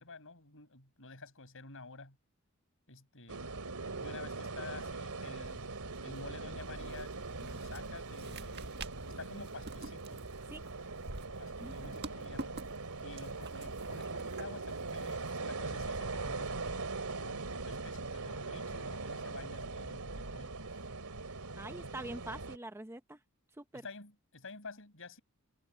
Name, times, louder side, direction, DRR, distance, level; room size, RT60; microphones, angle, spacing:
voice 1, 0.0-2.2 2.9-3.4 3.9-5.7 6.0-8.6 9.1-10.2 11.4-12.6 13.0-20.6 23.7-25.2, left 3 dB, 65° left, 6.8 m, -50 dB
sound 1, 3.3-22.6, right 3 dB, 85° right, 2.8 m, -41 dB
sound 2, 4.8-15.3, right 3 dB, 50° right, 1.6 m, -50 dB
voice 2, 21.5-23.2 23.6-23.8, right 1 dB, 10° right, 0.7 m, -44 dB
head